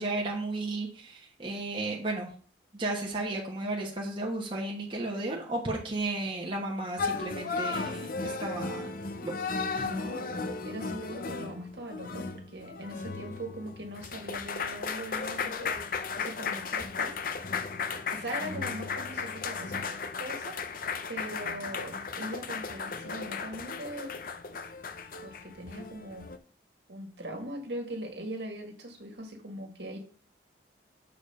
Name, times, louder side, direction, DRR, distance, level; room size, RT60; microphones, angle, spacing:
voice 1, 0.0-2.3 2.7-8.9 9.2-9.3 9.7-9.9, right 2 dB, 25° right, -2 dB, 1.2 m, -34 dB
sound 1, 7.0-26.4, left 5 dB, 45° left, 0.6 m, -35 dB
voice 2, 9.7-17.2 18.1-19.8 20.2-20.6 21.1-24.1 25.2-26.3 26.9-30.0, right 1 dB, 60° right, 3 dB, 1.8 m, -41 dB
6.8 x 4.2 x 5.4 m, 0.42 s
head